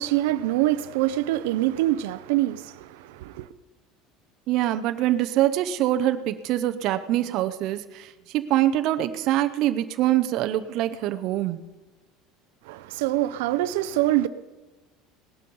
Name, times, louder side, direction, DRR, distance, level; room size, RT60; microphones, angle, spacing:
voice 1, 0.0-3.5 12.6-14.3, right 15 dB, 85° right, 0.6 m, -25 dB
voice 2, 4.5-11.6, right 13 dB, 45° right, 0.7 m, -24 dB
18.0 x 11.5 x 5.5 m
cardioid pair, 175°, 0 cm